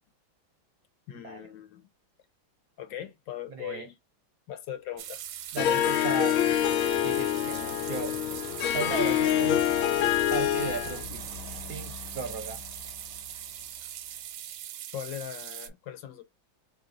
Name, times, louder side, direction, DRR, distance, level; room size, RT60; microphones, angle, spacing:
voice 1, 1.1-1.9 2.8-3.9 4.5-5.2 14.9-16.2, left 10 dB, 70° left, 1.4 m, -39 dB
voice 2, 3.5-3.9 5.5-6.4 7.0-8.2 8.7-9.6 10.3-11.3 11.7-12.6, right 6 dB, 65° right, 0.9 m, -36 dB
sound 1, 5.0-15.7, right 11 dB, 85° right, 1.4 m, -41 dB
Truck, 5.2-14.6, left 3 dB, 35° left, 1.4 m, -47 dB
Harp, 5.6-11.0, left 11 dB, 90° left, 1.4 m, -26 dB
3.3 x 2.7 x 3.8 m
omnidirectional pair, 2.2 m